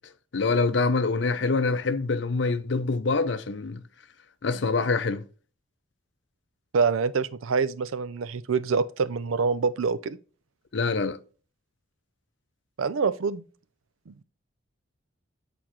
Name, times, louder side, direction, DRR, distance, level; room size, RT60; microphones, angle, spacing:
voice 1, 0.3-3.8 4.4-5.2 10.7-11.2, left 4 dB, 60° left, 0.6 m, -25 dB
voice 2, 6.7-10.2 12.8-13.4 14.1-14.2, right 5 dB, 85° right, 0.5 m, -26 dB
8.7 x 4.3 x 3.0 m
head